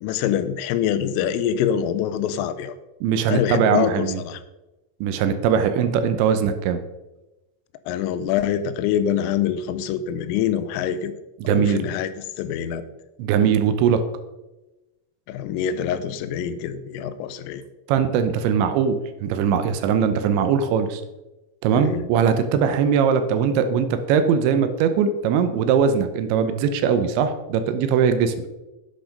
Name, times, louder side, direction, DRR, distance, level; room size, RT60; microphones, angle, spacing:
voice 1, 0.0-2.7 3.3-4.4 7.9-11.1 11.4-12.1 12.4-12.8 15.3-17.6 21.7-22.1, left 9 dB, 85° left, 12 dB, 3.3 m, -25 dB
voice 2, 3.0-4.2 5.0-6.8 11.4-11.8 13.2-14.0 17.9-21.0 21.6-28.4, right 7 dB, 80° right, 9 dB, 2.7 m, -20 dB
10.5 x 8.7 x 5.2 m, 1.0 s
omnidirectional pair, 5.9 m